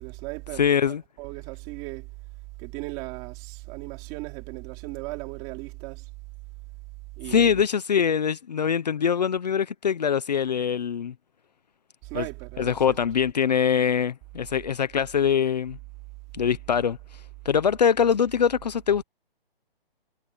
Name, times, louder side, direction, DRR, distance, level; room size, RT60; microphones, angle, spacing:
voice 1, 0.0-2.1 2.6-6.1 7.2-7.6 12.0-12.9, right 23 dB, 15° right, 3.2 m, -37 dB
voice 2, 0.6-1.0 7.3-11.1 12.1-12.2 12.6-15.8 16.3-17.0 17.4-19.0, left 7 dB, 45° left, 1.1 m, -23 dB
hypercardioid pair, 175°, 30 cm